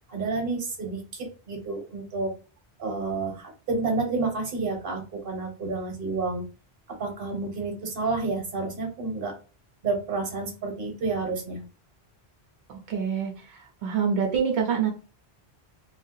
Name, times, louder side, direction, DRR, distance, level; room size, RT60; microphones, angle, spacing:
voice 1, 0.1-2.3 2.8-6.4 6.9-9.3 9.8-11.6, right 3 dB, 55° right, 2 dB, 1.2 m, -30 dB
voice 2, 12.7-14.9, right 7 dB, 85° right, 2 dB, 0.9 m, -26 dB
2.6 x 2.4 x 3.8 m, 0.35 s
omnidirectional pair, 1.1 m